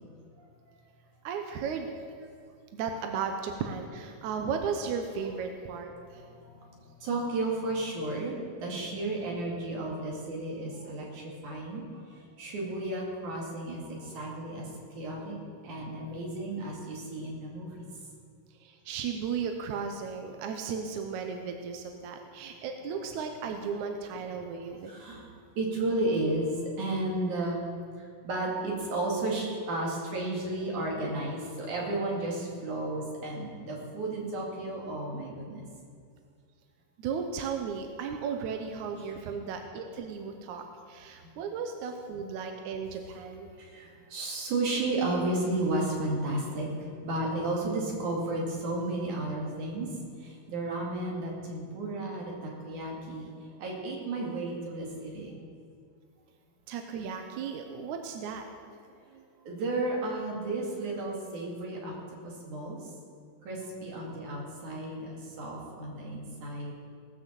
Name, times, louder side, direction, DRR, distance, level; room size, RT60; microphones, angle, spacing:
voice 1, 1.2-1.9 2.7-6.2 18.6-24.9 37.0-43.5 56.7-58.4, right 6 dB, 75° right, 4 dB, 1.9 m, -35 dB
voice 2, 6.1-6.7 7.0-11.8 12.4-14.7 14.9-15.4 15.6-17.8 24.9-25.3 25.6-27.7 28.2-35.7 38.7-38.9 39.2-39.3 43.6-49.9 50.2-53.3 53.6-55.4 59.1-61.9 62.5-62.8 63.5-65.0 65.4-66.7, right 2 dB, 60° right, -2 dB, 3.5 m, -33 dB
18.5 x 6.2 x 7.3 m, 2.2 s
omnidirectional pair, 4.2 m